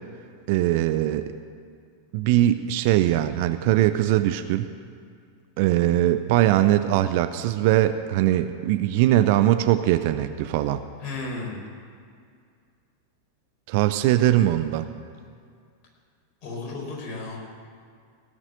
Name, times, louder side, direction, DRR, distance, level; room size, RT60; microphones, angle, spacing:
voice 1, 0.5-1.3 2.1-4.7 5.6-10.8 13.7-14.9, right 13 dB, 50° right, 10 dB, 0.6 m, -21 dB
voice 2, 11.0-11.6 16.4-17.4, left 3 dB, 40° left, -2 dB, 4.6 m, -33 dB
17.5 x 6.2 x 9.2 m, 2.2 s
figure-of-eight pair, 90°, 0 cm